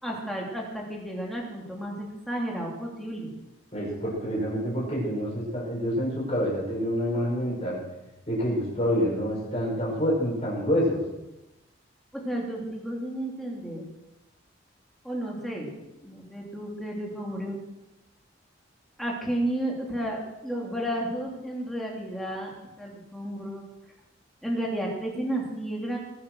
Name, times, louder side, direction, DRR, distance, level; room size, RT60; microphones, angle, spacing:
voice 1, 0.0-3.3 12.1-13.8 15.0-15.7 16.0-17.6 19.0-22.5 22.8-23.6 24.4-26.0, right 1 dB, ahead, -2 dB, 3.5 m, -32 dB
voice 2, 3.7-7.8 8.3-11.0, equal, 30° left, -3 dB, 6.5 m, -27 dB
21.5 x 9.5 x 6.5 m, 0.97 s
head